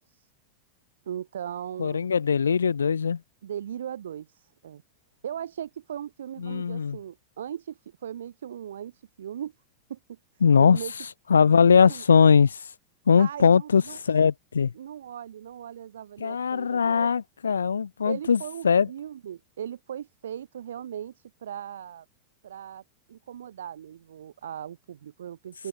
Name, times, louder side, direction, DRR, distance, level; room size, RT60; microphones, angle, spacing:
voice 1, 1.1-2.0 3.4-4.8 5.2-9.5 9.9-10.2 10.6-10.9 11.9-12.0 13.2-14.0 14.7-17.1 18.0-22.1 22.4-22.8 23.1-25.7, right 9 dB, 65° right, 1.0 m, -38 dB
voice 2, 1.8-3.2 6.4-7.0 10.4-10.8 11.3-12.6 13.1-14.7 16.2-18.9, left 6 dB, 70° left, 0.4 m, -20 dB
figure-of-eight pair, 90°, 0 cm